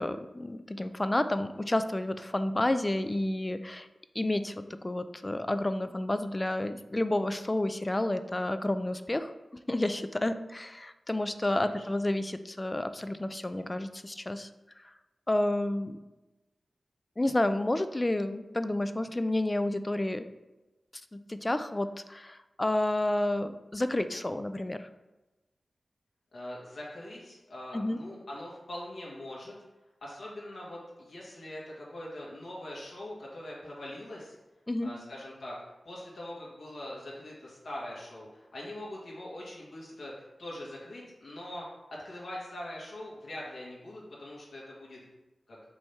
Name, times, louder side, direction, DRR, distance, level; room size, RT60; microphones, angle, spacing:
voice 1, 0.0-3.9 4.2-14.5 15.3-16.0 17.2-20.3 21.1-24.9 27.7-28.0 34.7-34.9, left 1 dB, 20° left, 10 dB, 0.3 m, -30 dB
voice 2, 11.5-11.8 26.3-29.5 30.0-34.4 34.8-35.6 35.8-41.7 41.9-45.0 45.5-45.6, left 1 dB, 75° left, -5 dB, 1.8 m, -42 dB
5.3 x 3.5 x 5.7 m, 1.1 s
wide cardioid pair, 130°, 0 cm